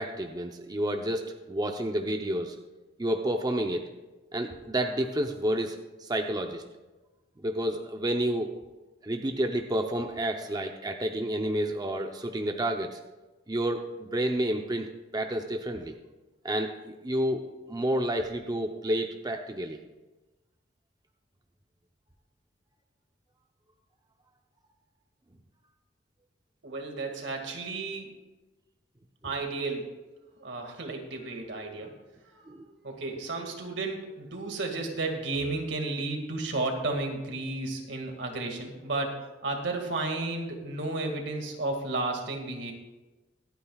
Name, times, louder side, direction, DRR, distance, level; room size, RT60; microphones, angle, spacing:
voice 1, 0.0-2.5 3.0-3.8 4.3-6.6 7.4-8.5 9.0-13.0 13.5-14.9 15.1-15.9 16.4-17.4 17.7-19.8 32.5-32.6, right 1 dB, 20° right, 3 dB, 0.7 m, -30 dB
voice 2, 26.6-28.1 29.2-29.9 30.4-32.0 32.2-32.6 32.8-42.7, right 2 dB, 75° right, 3 dB, 2.1 m, -33 dB
25.0 x 9.2 x 2.4 m, 1.1 s
head